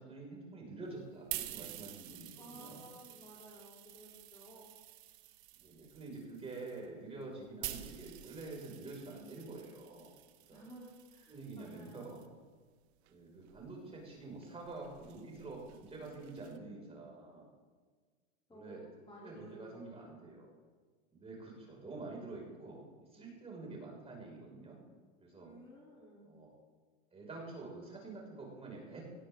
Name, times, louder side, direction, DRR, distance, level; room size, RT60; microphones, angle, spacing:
voice 1, 0.0-2.8 5.6-10.1 10.5-10.6 11.3-12.2 13.1-17.5 18.5-18.8 19.2-20.5 21.1-24.8 25.2-25.5 26.2-26.5 27.1-29.1, right 3 dB, 15° right, -2 dB, 6.0 m, -47 dB
sound 1, 0.9-12.3 13.0-16.6, right 15 dB, 60° right, 1.4 m, -49 dB
voice 2, 2.4-4.7 10.5-12.1 16.0-16.9 18.5-20.1 25.4-26.4, equal, 15° left, -4 dB, 3.6 m, -55 dB
19.0 x 16.5 x 3.9 m, 1.5 s
supercardioid pair, 125°, 37 cm